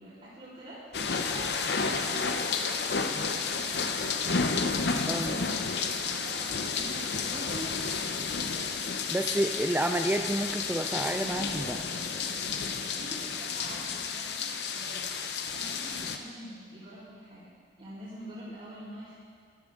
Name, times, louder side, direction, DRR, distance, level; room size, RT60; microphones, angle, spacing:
voice 1, 0.0-2.0 2.4-3.9 4.3-5.9 6.2-6.4 6.8-8.7 12.9-17.4 17.8-19.2, right 1 dB, 45° right, -13 dB, 3.8 m, -46 dB
sound 1, 0.9-16.2, left 5 dB, 70° left, 0.7 m, -31 dB
voice 2, 5.1-5.4 9.1-11.8, right 1 dB, 10° right, 5 dB, 0.3 m, -29 dB
13.5 x 12.5 x 3.7 m, 2.1 s
head